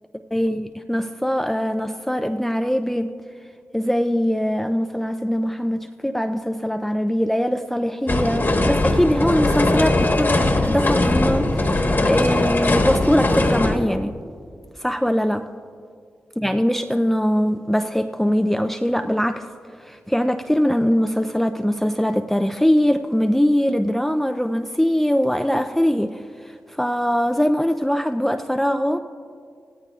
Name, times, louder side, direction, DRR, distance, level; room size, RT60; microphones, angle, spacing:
voice 1, 0.3-3.1 3.7-14.1 14.8-15.4 16.4-19.5 19.8-29.0, equal, 5° left, 7 dB, 0.4 m, -22 dB
sound 1, 8.1-13.7, left 2 dB, 45° left, 1.3 m, -20 dB
16.5 x 14.0 x 2.4 m, 2.2 s
cardioid pair, 50°, 5 cm